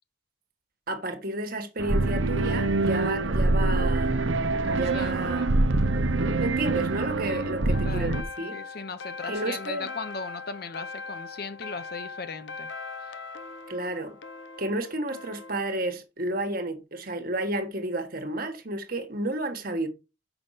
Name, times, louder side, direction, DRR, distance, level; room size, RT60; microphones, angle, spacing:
voice 1, 0.9-4.1 4.7-5.5 6.2-8.6 9.3-9.9 13.7-14.2 14.6-19.9, right 1 dB, 50° right, 1.5 m, -31 dB
sound 1, 1.8-8.2, right 2 dB, 85° right, 0.9 m, -25 dB
voice 2, 4.5-5.5 7.2-12.7 13.0-13.1, left 4 dB, 55° left, 1.0 m, -39 dB
sound 2, 7.7-15.6, left 4 dB, 75° left, 0.8 m, -40 dB
6.9 x 5.9 x 5.8 m
head